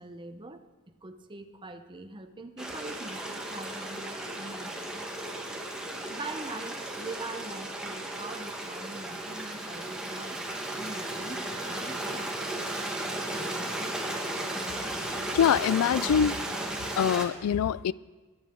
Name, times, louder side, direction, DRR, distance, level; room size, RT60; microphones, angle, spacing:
voice 1, 0.0-5.0 6.1-10.4 10.8-12.4, right 2 dB, 20° right, 6 dB, 0.8 m, -43 dB
Stream, 2.6-17.3, right 1 dB, 5° right, 1.3 m, -35 dB
voice 2, 15.3-16.4 17.0-17.9, left 8 dB, 75° left, 21 dB, 0.3 m, -24 dB
21.0 x 10.5 x 3.8 m, 1.3 s
head